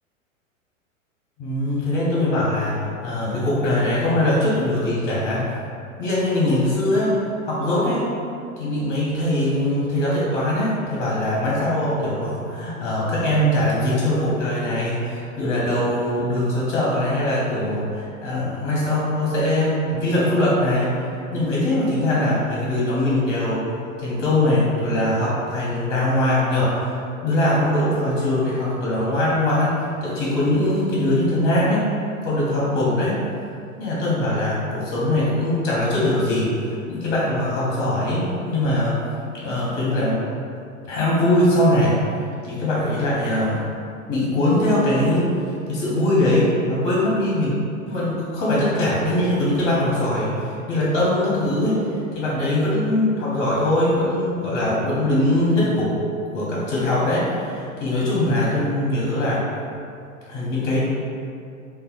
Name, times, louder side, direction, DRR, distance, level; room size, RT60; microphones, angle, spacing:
voice 1, 1.4-5.4 6.0-7.1 7.4-8.0 8.6-20.9 21.3-23.6 24.0-27.0 27.2-31.9 32.2-33.2 33.8-38.9 39.4-40.2 40.9-42.0 42.4-43.7 44.1-47.6 47.9-51.9 52.1-55.9 56.3-59.4 60.3-60.8, left 1 dB, 35° left, -6 dB, 0.8 m, -21 dB
3.4 x 2.3 x 2.5 m, 2.5 s
figure-of-eight pair, 100°, 40 cm